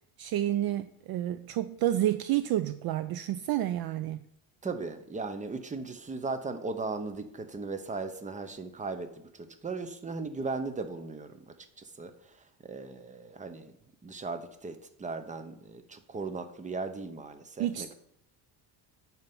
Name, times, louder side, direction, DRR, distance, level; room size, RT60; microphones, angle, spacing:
voice 1, 0.2-4.2 17.6-17.9, right 13 dB, 50° right, 0.5 m, -29 dB
voice 2, 4.6-13.7 14.0-17.9, right 3 dB, 15° right, 0.8 m, -37 dB
8.9 x 4.6 x 5.4 m
cardioid pair, 110°, 50 cm